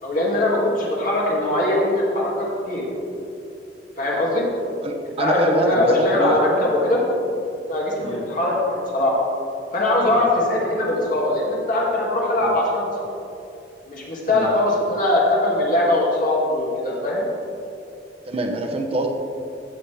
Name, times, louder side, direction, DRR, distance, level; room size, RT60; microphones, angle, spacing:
voice 1, 0.0-2.8 4.0-4.5 5.2-7.0 7.7-9.1 9.7-12.9 13.9-17.2, left 1 dB, 50° left, -4 dB, 2.3 m, -21 dB
voice 2, 4.8-6.8 8.0-8.2 10.1-10.3 12.4-12.6 14.3-14.5 18.3-19.1, right 1 dB, 35° right, 2 dB, 0.7 m, -25 dB
15.0 x 7.0 x 3.4 m, 2.7 s
head